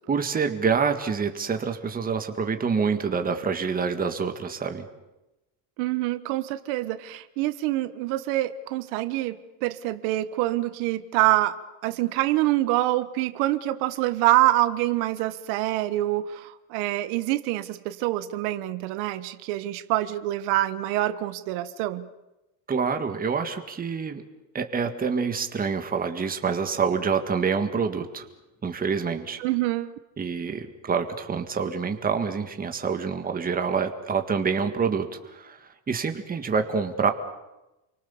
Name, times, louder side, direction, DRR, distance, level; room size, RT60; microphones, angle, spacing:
voice 1, 0.1-4.9 22.7-24.2 24.5-28.3 28.6-29.4 30.2-37.1, right 5 dB, 15° right, 6 dB, 1.8 m, -27 dB
voice 2, 5.8-9.4 9.6-11.6 11.8-22.1 29.4-29.9, right 16 dB, 85° right, 12 dB, 1.6 m, -25 dB
30.0 x 23.5 x 7.2 m, 0.98 s
cardioid pair, 170°, 49 cm